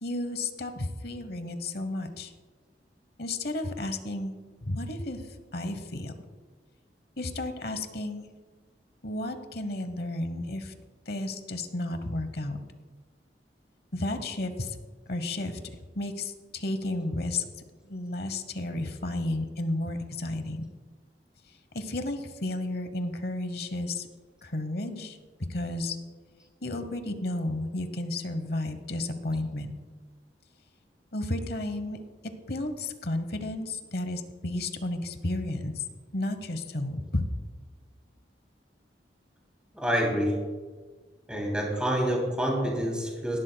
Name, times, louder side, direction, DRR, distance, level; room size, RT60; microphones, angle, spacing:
voice 1, 0.0-2.3 3.2-5.2 5.5-6.1 7.2-8.3 9.0-10.7 11.1-12.6 13.9-14.8 15.1-15.6 15.9-17.4 17.9-20.7 21.7-24.1 24.4-25.2 25.5-26.0 26.6-29.7 31.1-32.0 32.5-35.8 36.1-37.2, left 2 dB, 60° left, 9 dB, 1.0 m, -32 dB
voice 2, 39.7-40.4 41.3-43.4, equal, 5° right, -2 dB, 2.8 m, -27 dB
18.0 x 12.0 x 2.3 m, 1.4 s
head